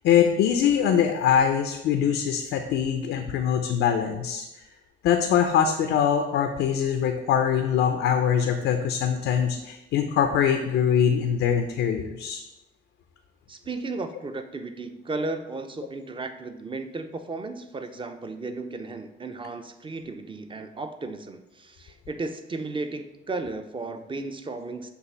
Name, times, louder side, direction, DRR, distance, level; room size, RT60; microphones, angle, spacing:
voice 1, 0.0-4.4 5.0-12.4, left 8 dB, 85° left, 5 dB, 0.5 m, -23 dB
voice 2, 13.5-24.9, right 3 dB, 25° right, 8 dB, 0.6 m, -34 dB
6.8 x 2.5 x 5.6 m, 0.96 s
cardioid pair, 90°, 20 cm